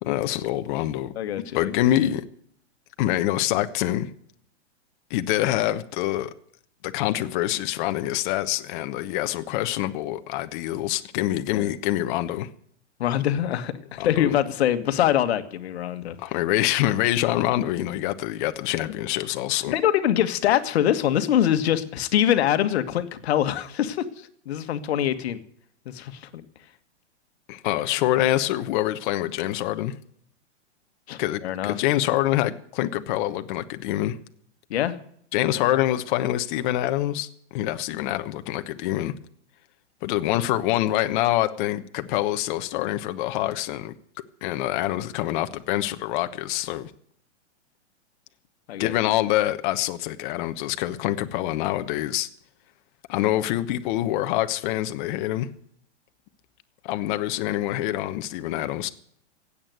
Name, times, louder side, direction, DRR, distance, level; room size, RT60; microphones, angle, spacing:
voice 1, 0.0-1.1 1.5-2.2 3.0-4.1 5.1-6.3 6.8-12.5 14.0-14.4 16.2-19.7 27.5-29.9 31.2-34.2 35.3-39.1 40.0-43.9 44.4-46.9 48.8-52.3 53.1-55.5 56.8-58.9, left 14 dB, 45° left, 1.2 m, -25 dB
voice 2, 1.1-1.7 11.5-11.7 13.0-16.2 18.8-18.9 19.7-25.4 25.8-26.3 31.1-31.7 34.7-35.0 35.4-35.7 48.7-48.9, left 11 dB, 65° left, 1.7 m, -24 dB
16.0 x 8.7 x 9.3 m
hypercardioid pair, 130°, 35 cm